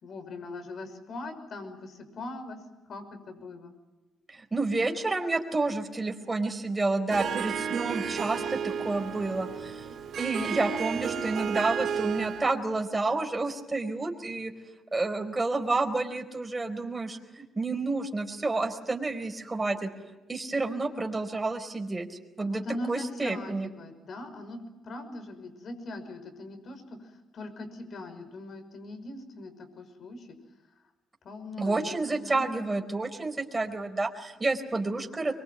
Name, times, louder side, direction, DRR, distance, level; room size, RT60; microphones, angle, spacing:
voice 1, 0.0-2.6 2.9-3.7 22.4-27.0 27.3-30.4 31.2-32.7, left 2 dB, 55° left, 8 dB, 5.9 m, -40 dB
voice 2, 4.3-9.9 10.2-14.5 14.9-19.9 20.3-22.6 22.9-23.7 31.6-35.3, right 3 dB, 20° right, 4 dB, 4.4 m, -30 dB
Harp, 7.1-12.6, right 7 dB, 65° right, 2.8 m, -32 dB
23.5 x 23.5 x 9.3 m, 1.1 s
cardioid pair, 90°, 0 cm